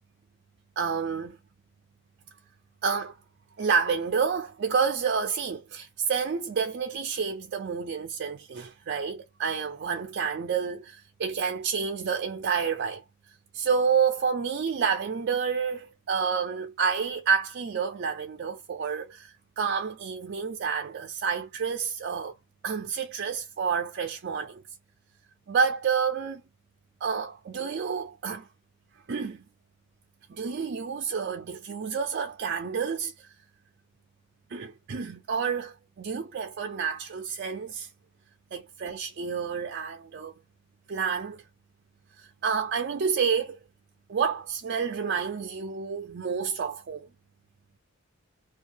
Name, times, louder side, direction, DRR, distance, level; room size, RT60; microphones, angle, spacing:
voice 1, 0.8-1.4 2.8-3.2 3.6-13.0 13.5-22.3 22.6-24.6 25.5-26.4 27.0-28.5 29.1-29.4 30.3-33.3 34.5-37.9 38.5-40.3 40.9-41.4 42.2-43.6 44.1-47.1, right 6 dB, 50° right, 0.4 m, -29 dB
2.6 x 2.3 x 2.8 m
head